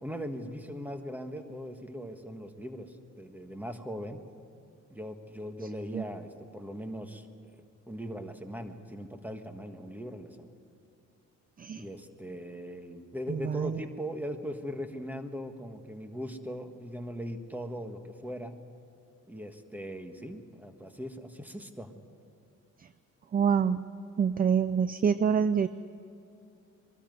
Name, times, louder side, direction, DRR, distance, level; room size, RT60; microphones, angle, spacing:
voice 1, 0.0-4.2 4.9-7.3 7.9-10.5 11.8-18.5 19.3-21.9, equal, 5° right, 6 dB, 1.6 m, -39 dB
voice 2, 13.3-13.8 23.3-23.9 24.2-25.7, right 7 dB, 30° right, 14 dB, 0.5 m, -26 dB
21.5 x 13.0 x 9.4 m, 2.5 s
cardioid pair, 90°, 30 cm